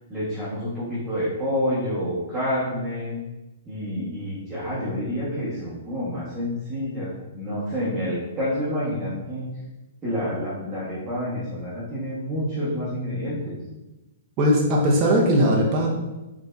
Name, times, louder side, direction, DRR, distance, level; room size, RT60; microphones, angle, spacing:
voice 1, 0.1-3.2 3.6-9.5 10.0-13.6, equal, 15° right, -12 dB, 1.3 m, -28 dB
voice 2, 14.4-15.9, equal, 30° right, -2 dB, 0.7 m, -19 dB
4.2 x 3.5 x 2.6 m, 1.0 s
hypercardioid pair, 155°, 0 cm